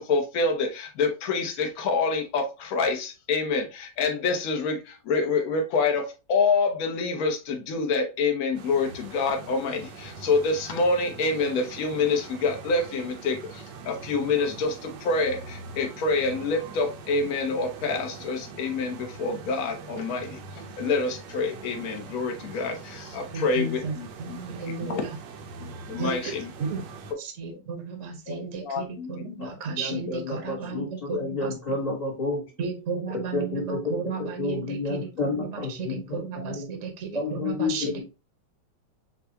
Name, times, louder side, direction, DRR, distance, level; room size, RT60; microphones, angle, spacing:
voice 1, 0.0-24.4 24.8-25.0 25.6-26.5 28.3-29.8 30.1-30.2 30.8-31.3 37.8-37.9, left 4 dB, 55° left, 4 dB, 1.2 m, -27 dB
sound 1, 8.5-27.1, right 4 dB, 70° right, 1.3 m, -43 dB
voice 2, 23.3-23.9 24.2-25.2 26.0-26.9 27.2-31.8 32.6-38.0, right 5 dB, 50° right, 4 dB, 1.0 m, -34 dB
voice 3, 29.4-32.4 33.1-36.7 37.1-38.0, left 3 dB, 30° left, -3 dB, 0.8 m, -31 dB
6.8 x 2.3 x 2.8 m, 0.29 s
omnidirectional pair, 2.1 m